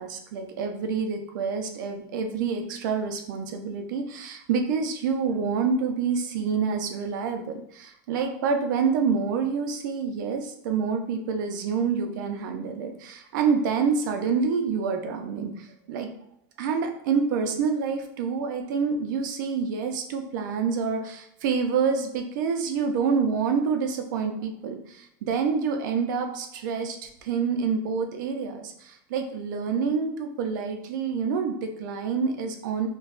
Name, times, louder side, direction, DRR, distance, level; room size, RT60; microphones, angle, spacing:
voice 1, 0.0-16.1 16.6-32.9, right 5 dB, 80° right, 5 dB, 0.6 m, -27 dB
4.5 x 2.2 x 2.5 m, 0.73 s
supercardioid pair, 175°, 10 cm